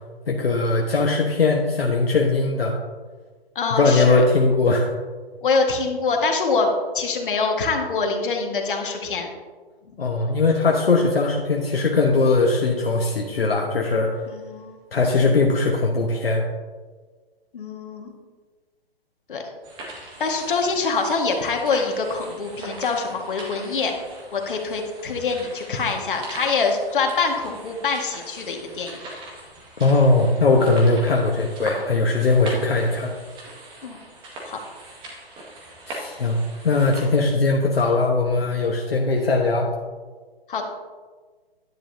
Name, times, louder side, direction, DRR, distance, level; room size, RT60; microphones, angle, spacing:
voice 1, 0.3-2.7 3.7-4.9 10.0-14.1 14.9-16.4 29.8-33.1 35.9-36.4 36.6-39.7, left 3 dB, 70° left, 0 dB, 1.3 m, -20 dB
voice 2, 3.6-4.2 5.4-9.3 14.3-14.7 17.5-18.1 19.3-19.4 20.2-23.9 24.3-29.0 33.8-34.0 34.5-34.6 40.5-40.7, left 4 dB, 55° left, 2 dB, 1.7 m, -24 dB
sound 1, 19.6-37.1, right 1 dB, 15° right, 1.8 m, -40 dB
10.5 x 10.5 x 2.8 m, 1.4 s
figure-of-eight pair, 135°, 31 cm